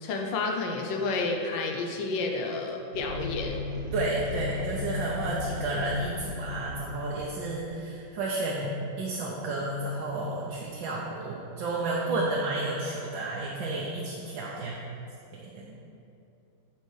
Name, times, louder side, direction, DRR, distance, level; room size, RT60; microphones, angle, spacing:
voice 1, 0.0-3.6, left 3 dB, 75° left, 2 dB, 1.5 m, -30 dB
sound 1, 2.9-8.1, left 3 dB, 70° right, 1.6 m, -36 dB
voice 2, 3.9-14.8 15.5-15.8, right 2 dB, 85° right, -3 dB, 1.6 m, -31 dB
13.0 x 4.4 x 3.3 m, 2.7 s
omnidirectional pair, 2.1 m